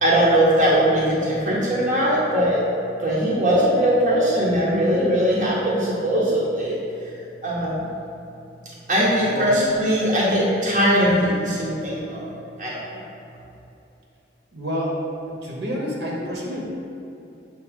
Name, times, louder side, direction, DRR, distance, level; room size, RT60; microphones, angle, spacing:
voice 1, 0.0-2.6 3.0-7.1 7.4-7.9 8.9-12.3 12.6-13.0, equal, 40° right, -7 dB, 0.9 m, -20 dB
voice 2, 14.5-15.0 15.3-16.6, equal, 65° right, -3 dB, 1.1 m, -28 dB
7.1 x 2.7 x 5.0 m, 2.7 s
head